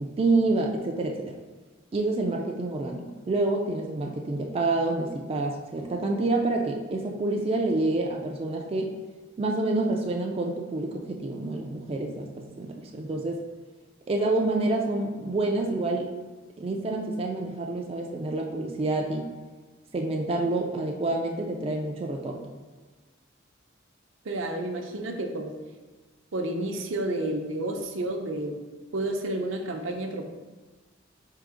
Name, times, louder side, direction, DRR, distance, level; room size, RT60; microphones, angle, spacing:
voice 1, 0.0-1.3 1.9-8.9 9.4-13.4 14.1-16.1 16.6-19.3 19.9-22.5, right 2 dB, 30° right, 1 dB, 0.3 m, -28 dB
voice 2, 24.2-25.5 26.3-28.5 28.9-30.2, right 1 dB, 75° right, 3 dB, 0.6 m, -30 dB
3.7 x 2.8 x 4.8 m, 1.3 s
head